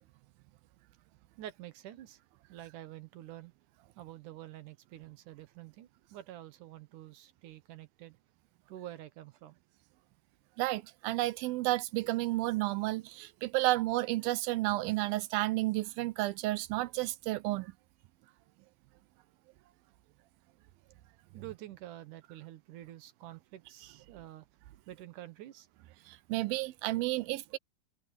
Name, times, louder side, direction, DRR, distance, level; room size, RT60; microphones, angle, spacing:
voice 1, 1.4-2.2 2.5-3.5 4.0-8.2 8.7-9.6 21.3-24.5 24.9-25.7, right 13 dB, 70° right, 2.4 m, -48 dB
voice 2, 10.6-17.7 26.1-27.6, right 18 dB, 85° right, 2.6 m, -31 dB
omnidirectional pair, 4.2 m